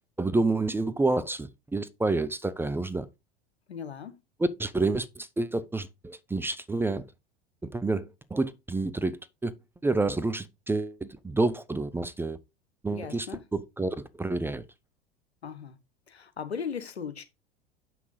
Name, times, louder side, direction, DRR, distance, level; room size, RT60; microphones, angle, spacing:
voice 1, 0.2-3.1 4.4-7.0 7.6-9.5 9.8-12.4 12.8-13.3 13.5-14.6, right 2 dB, 5° right, 0.6 m, -29 dB
voice 2, 3.7-4.1 12.9-13.4 15.4-15.8 16.1-17.2, left 6 dB, 80° left, 1.1 m, -37 dB
7.4 x 6.0 x 3.8 m
figure-of-eight pair, 80°, 32 cm